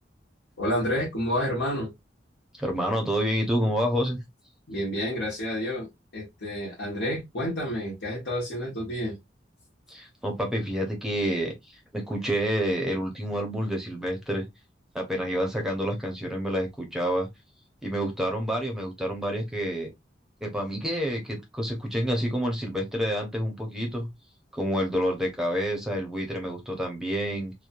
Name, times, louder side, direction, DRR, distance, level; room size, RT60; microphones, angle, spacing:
voice 1, 0.6-1.9 4.7-5.9 6.1-9.2, equal, 85° left, 1.0 m, -29 dB
voice 2, 2.6-4.2 9.9-14.5 14.9-17.3 17.8-19.9 20.4-24.1 24.5-27.5, equal, 5° right, 0.6 m, -28 dB
3.0 x 2.1 x 2.4 m
head